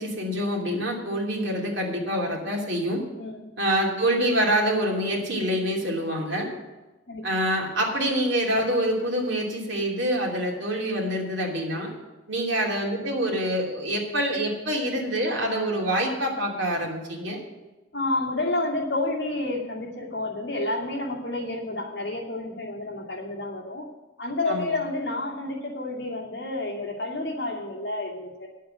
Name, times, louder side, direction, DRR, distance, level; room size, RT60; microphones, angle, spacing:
voice 1, 0.0-3.0 3.6-6.5 7.2-11.9 12.3-17.4 24.5-24.8, equal, 70° right, -1 dB, 2.8 m, -26 dB
voice 2, 17.9-23.9 24.2-28.5, left 2 dB, 60° left, -2 dB, 2.4 m, -30 dB
10.0 x 7.7 x 7.8 m, 1.1 s
head